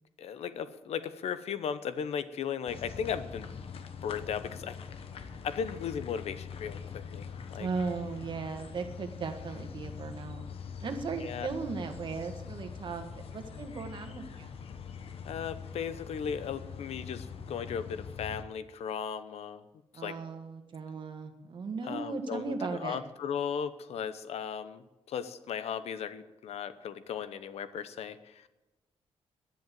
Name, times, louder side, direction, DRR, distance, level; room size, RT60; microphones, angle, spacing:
voice 1, 0.2-3.5 4.0-4.8 5.4-7.7 11.2-11.5 15.2-19.6 19.9-20.2 21.8-28.6, left 7 dB, 85° left, 13 dB, 0.8 m, -36 dB
sound 1, 2.7-18.4, left 6 dB, 65° left, 1.2 m, -43 dB
voice 2, 7.6-10.4 10.8-14.5 19.9-23.0, right 4 dB, 50° right, 6 dB, 1.7 m, -37 dB
10.5 x 10.5 x 7.5 m, 1.1 s
wide cardioid pair, 130°, 10 cm